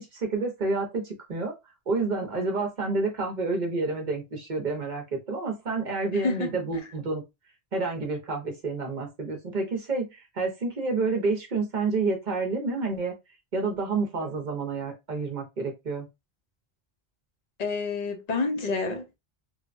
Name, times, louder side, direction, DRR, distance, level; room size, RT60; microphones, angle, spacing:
voice 1, 0.0-1.5 1.9-7.2 7.7-10.1 10.3-13.1 13.5-16.1, right 3 dB, 50° right, 0.8 m, -29 dB
voice 2, 6.1-6.9 17.6-19.2, left 3 dB, 50° left, 0.6 m, -29 dB
3.1 x 2.1 x 2.5 m
omnidirectional pair, 1.0 m